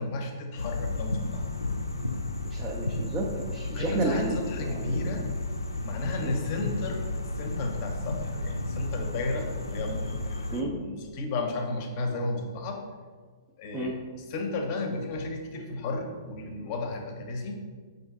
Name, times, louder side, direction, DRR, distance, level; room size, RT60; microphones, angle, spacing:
voice 1, 0.0-1.5 3.7-5.2 5.8-7.1 7.4-12.8 13.6-13.9 14.3-17.6, left 2 dB, 40° left, 3 dB, 0.6 m, -33 dB
sound 1, 0.6-10.6, left 2 dB, 80° left, 0.3 m, -33 dB
voice 2, 2.4-5.3 6.2-6.4 10.5-10.7 13.7-13.9, right 2 dB, 20° right, -1 dB, 0.4 m, -32 dB
5.3 x 2.7 x 3.5 m, 1.5 s
figure-of-eight pair, 110°, 2 cm